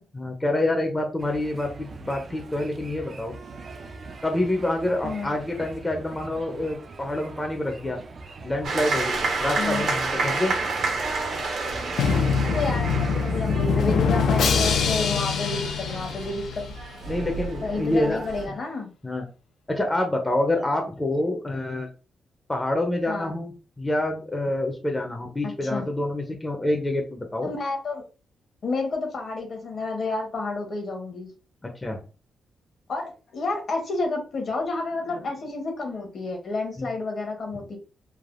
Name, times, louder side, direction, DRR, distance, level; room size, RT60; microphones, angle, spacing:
voice 1, 0.1-3.3 4.2-8.0 8.4-10.5 17.1-18.2 19.0-19.3 19.7-21.9 22.5-27.5 31.8-32.0 36.8-36.9, left 1 dB, 15° left, 3 dB, 0.5 m, -27 dB
sound 1, 1.2-13.0, right 3 dB, 45° right, 0.4 m, -41 dB
sound 2, 8.6-18.5, right 3 dB, 75° right, 0.9 m, -30 dB
voice 2, 9.6-9.9 12.5-16.6 17.6-18.9 23.1-23.3 25.4-25.9 27.4-28.0 28.6-31.3 32.9-37.8, left 3 dB, 50° left, 3 dB, 0.9 m, -30 dB
Drum, 12.0-16.8, left 5 dB, 80° left, 0.4 m, -24 dB
3.2 x 2.1 x 2.4 m, 0.35 s
cardioid pair, 115°, 0 cm